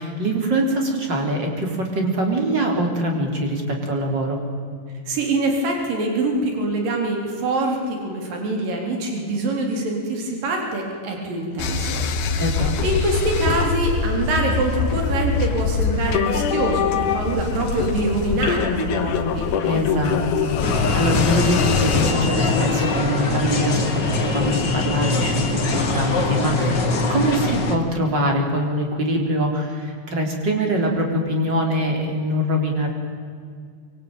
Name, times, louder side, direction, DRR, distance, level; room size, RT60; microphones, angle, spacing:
voice 1, 0.0-4.4 12.4-12.7 19.6-25.7 25.9-32.9, right 1 dB, 30° right, 2 dB, 4.2 m, -23 dB
voice 2, 5.1-12.4 12.8-19.5, right 2 dB, 70° right, 1 dB, 5.7 m, -24 dB
sound 1, 11.6-22.1, left 5 dB, 65° left, 2.8 m, -23 dB
sound 2, 20.6-27.7, left 3 dB, 35° left, 2.3 m, -22 dB
24.5 x 24.5 x 9.2 m, 2.1 s
omnidirectional pair, 4.2 m